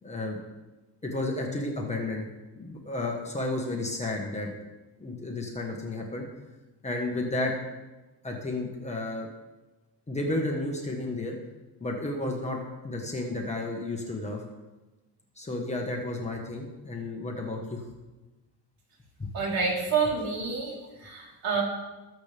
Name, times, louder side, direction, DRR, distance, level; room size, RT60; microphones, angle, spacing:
voice 1, 0.0-0.4 1.0-2.3 2.6-4.5 5.0-6.3 6.8-7.5 8.2-9.3 10.1-11.4 11.8-12.6 12.8-14.4 15.4-17.8 19.2-19.3, left 2 dB, 15° left, 0 dB, 1.3 m, -32 dB
voice 2, 19.3-20.7 21.0-21.6, right 5 dB, 65° right, -4 dB, 3.9 m, -28 dB
20.0 x 7.3 x 3.5 m, 1.1 s
cardioid pair, 170°, 40 cm